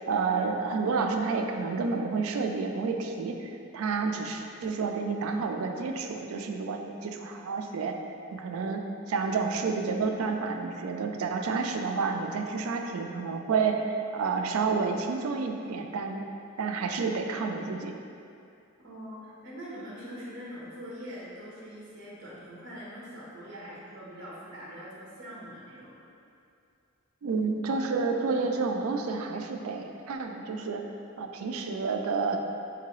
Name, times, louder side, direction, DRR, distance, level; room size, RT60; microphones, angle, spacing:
voice 1, 0.1-8.0 8.3-16.2 16.6-18.0 27.2-30.9 31.2-32.4, right 4 dB, 85° right, 4 dB, 0.4 m, -30 dB
voice 2, 18.8-26.0, equal, 55° right, -6 dB, 0.9 m, -43 dB
3.8 x 3.6 x 3.0 m, 2.5 s
head